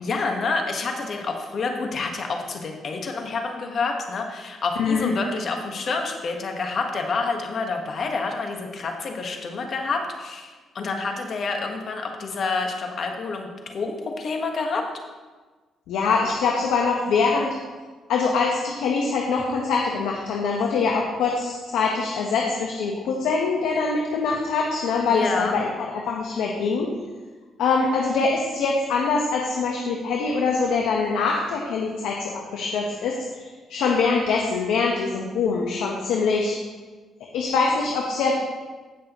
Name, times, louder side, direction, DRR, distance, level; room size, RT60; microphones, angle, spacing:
voice 1, 0.0-14.9 25.1-25.6, left 4 dB, 55° left, 3 dB, 1.4 m, -28 dB
voice 2, 4.8-5.1 15.9-17.5 18.1-26.9 27.6-36.5 37.3-38.4, left 4 dB, 85° left, -1 dB, 1.1 m, -24 dB
16.0 x 6.1 x 3.0 m, 1.3 s
cardioid pair, 90°, 0 cm